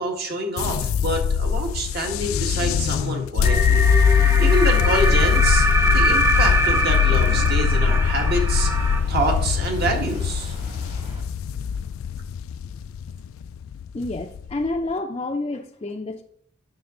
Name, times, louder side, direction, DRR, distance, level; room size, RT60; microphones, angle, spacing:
voice 1, 0.0-3.9 4.2-10.5, right 1 dB, 50° right, 2 dB, 1.7 m, -27 dB
sound 1, 0.6-14.8, left 7 dB, 90° left, 0.3 m, -21 dB
sound 2, 3.4-9.0, right 1 dB, 15° right, 0.8 m, -23 dB
Thunder, 6.6-11.2, equal, 35° right, 1.8 m, -39 dB
voice 2, 13.9-16.2, left 2 dB, 25° left, 2 dB, 0.5 m, -29 dB
9.4 x 6.2 x 3.7 m, 0.66 s
head